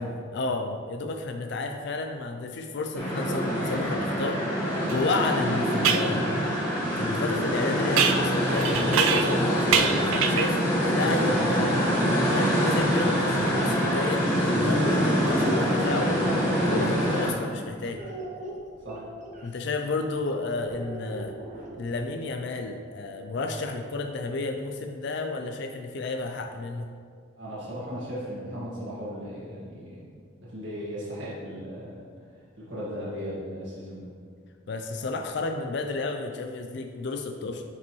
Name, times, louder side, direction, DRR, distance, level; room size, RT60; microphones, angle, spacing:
voice 1, 0.0-4.4 4.7-6.3 7.0-11.8 12.3-16.2 16.7-18.0 19.4-21.3 21.8-26.9 34.7-37.6, left 3 dB, 55° left, 5 dB, 0.4 m, -31 dB
sound 1, 2.9-17.3, equal, 10° left, 1.6 m, -25 dB
sound 2, 4.9-5.0 5.8-6.1 8.0-9.4 9.7-10.6, right 7 dB, 85° right, 0.4 m, -25 dB
sound 3, 13.3-13.9 14.7-17.6 18.0-19.5 20.7-22.0, right 1 dB, 35° right, 0.9 m, -40 dB
voice 2, 27.4-30.0 30.4-32.0 32.7-34.1, equal, 60° right, -8 dB, 1.8 m, -36 dB
8.3 x 5.1 x 3.1 m, 2.1 s
head